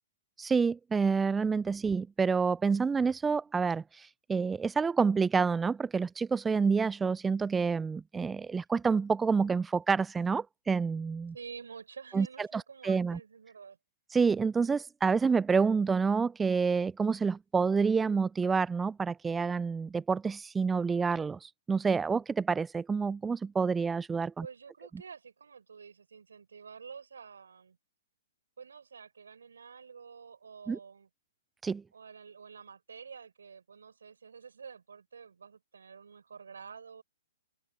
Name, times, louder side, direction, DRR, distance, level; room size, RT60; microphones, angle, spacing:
voice 1, 0.4-11.3 12.1-12.3 12.5-13.2 14.1-24.5 30.7-30.8 31.6-31.8, right 5 dB, 10° right, 0.3 m, -28 dB
voice 2, 11.3-13.8 24.4-27.8 28.6-31.1 31.9-37.0, right 6 dB, 70° right, 4.2 m, -49 dB
figure-of-eight pair, 120°, 0 cm